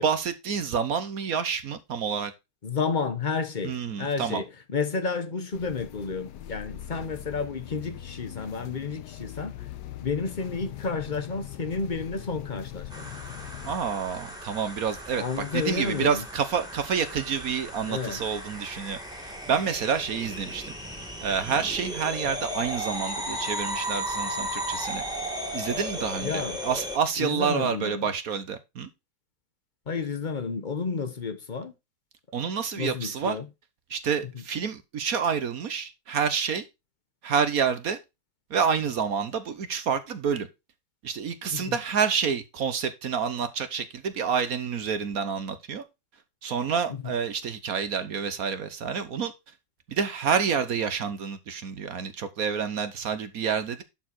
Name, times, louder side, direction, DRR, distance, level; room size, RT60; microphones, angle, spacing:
voice 1, 0.0-2.3 3.6-4.4 13.6-15.2 15.5-20.7 21.2-25.0 25.5-28.9 32.3-33.4 33.9-36.7 37.2-38.0 38.5-40.5 41.0-45.8 46.4-49.3 49.9-53.8, right 6 dB, 60° right, 1.3 m, -28 dB
voice 2, 2.6-9.7 10.0-13.1 15.2-16.2 17.9-18.2 26.2-26.6 27.2-28.1 29.9-31.7 32.8-33.5 34.3-34.4 41.5-41.8 46.9-47.1, left 4 dB, 30° left, 1.1 m, -31 dB
sound 1, 5.5-13.8, left 12 dB, 75° left, 1.4 m, -41 dB
sound 2, 12.9-27.0, equal, ahead, 2.2 m, -35 dB
11.0 x 4.7 x 4.3 m
omnidirectional pair, 1.9 m